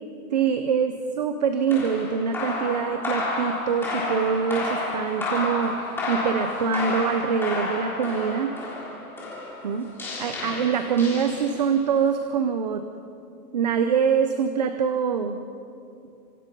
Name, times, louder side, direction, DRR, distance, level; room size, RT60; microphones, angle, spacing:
voice 1, 0.3-8.6 9.6-9.9 10.2-12.8 13.5-15.4, right 6 dB, 25° right, 8 dB, 0.6 m, -24 dB
sound 1, 1.7-11.8, left 2 dB, 5° left, 3.4 m, -31 dB
26.0 x 26.0 x 5.3 m, 2.6 s
hypercardioid pair, 175°, 47 cm